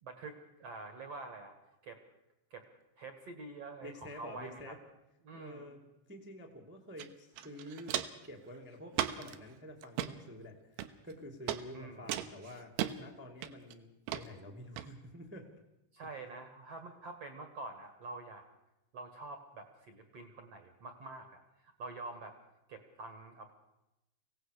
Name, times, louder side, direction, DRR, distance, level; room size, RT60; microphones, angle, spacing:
voice 1, 0.0-1.6 1.8-2.0 2.5-2.7 3.0-4.8 5.2-5.9 11.7-12.2 15.9-18.4 18.9-22.4 22.7-23.5, right 3 dB, 55° right, 6 dB, 1.9 m, -47 dB
voice 2, 3.8-4.8 5.3-5.8 6.1-8.0 8.2-12.7 13.0-15.5, left 1 dB, 5° right, 1 dB, 0.8 m, -49 dB
Walk footsteps, 7.0-7.1 7.4-8.3 8.9-9.4 9.8-10.1 10.8-11.1 11.5-11.6 12.1-12.9 13.4-13.7 14.1-14.2 14.8-14.9, right 12 dB, 80° right, 3.0 m, -36 dB
25.0 x 17.0 x 6.7 m, 0.91 s
omnidirectional pair, 5.2 m